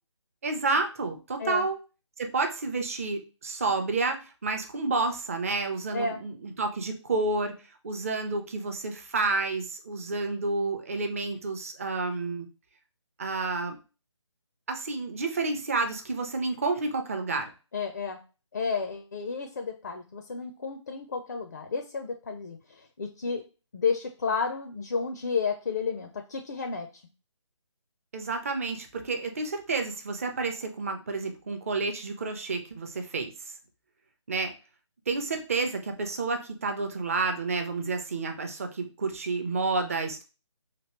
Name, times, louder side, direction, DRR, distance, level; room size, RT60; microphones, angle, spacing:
voice 1, 0.4-1.8 2.2-7.6 7.8-12.5 13.2-13.8 14.7-17.5 28.1-33.3 34.3-34.5 35.1-40.2, right 3 dB, 30° right, 5 dB, 0.5 m, -30 dB
voice 2, 17.7-18.2 18.5-22.6 23.0-23.4 23.7-26.9, left 5 dB, 35° left, 4 dB, 0.4 m, -31 dB
2.9 x 2.7 x 2.9 m, 0.33 s
figure-of-eight pair, 150°, 16 cm